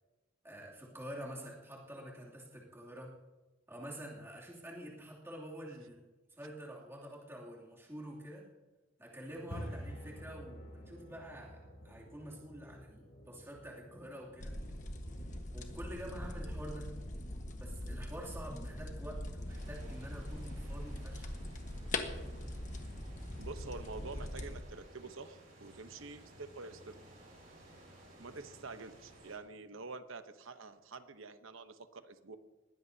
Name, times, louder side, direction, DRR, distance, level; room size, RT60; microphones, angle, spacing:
voice 1, 0.4-3.2 3.7-6.0 6.3-8.5 9.0-14.5 15.5-17.0 17.6-21.4, equal, 10° right, -5 dB, 2.7 m, -47 dB
sound 1, 9.3-29.2, equal, 90° left, 3.4 m, -54 dB
sound 2, 14.4-24.6, left 1 dB, 35° left, 1.4 m, -42 dB
sound 3, 19.5-29.4, right 1 dB, 45° right, 6.2 m, -58 dB
voice 2, 23.4-27.0 28.2-32.4, right 3 dB, 80° right, 10 dB, 0.9 m, -47 dB
20.5 x 16.5 x 2.8 m, 1.2 s
head